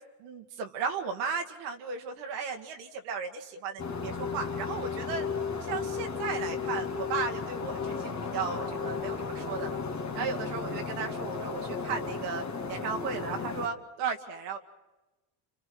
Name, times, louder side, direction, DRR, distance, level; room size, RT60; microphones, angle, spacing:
voice 1, 0.2-5.3 5.6-9.8 10.1-14.6, right 5 dB, 75° right, 4 dB, 2.2 m, -35 dB
sound 1, 3.8-13.7, left 5 dB, 35° left, 2.3 m, -34 dB
28.5 x 28.5 x 4.8 m, 1.1 s
hypercardioid pair, 75°, 50 cm